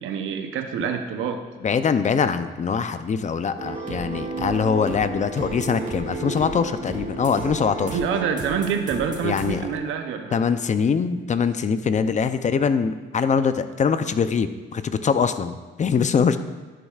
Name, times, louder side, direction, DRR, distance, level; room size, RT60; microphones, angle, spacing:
voice 1, 0.0-1.4 7.8-10.4, right 6 dB, 85° right, 5 dB, 0.8 m, -26 dB
voice 2, 1.6-8.0 9.2-9.6 10.3-16.4, left 6 dB, 35° left, 11 dB, 0.5 m, -23 dB
sound 1, 3.6-10.9, right 3 dB, 40° right, 1.9 m, -33 dB
10.5 x 10.0 x 2.4 m, 1.3 s
cardioid pair, 90°, 20 cm